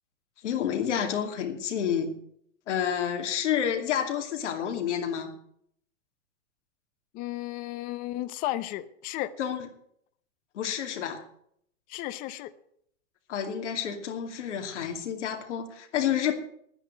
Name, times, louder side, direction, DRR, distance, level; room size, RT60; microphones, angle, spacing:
voice 1, 0.4-2.1 2.7-5.3 9.4-9.7 10.5-11.2 13.3-16.3, left 9 dB, 80° left, 4 dB, 2.6 m, -29 dB
voice 2, 7.1-9.3 11.9-12.5, left 15 dB, 25° left, 14 dB, 0.7 m, -34 dB
9.8 x 9.8 x 9.4 m, 0.69 s
supercardioid pair, 155°, 35 cm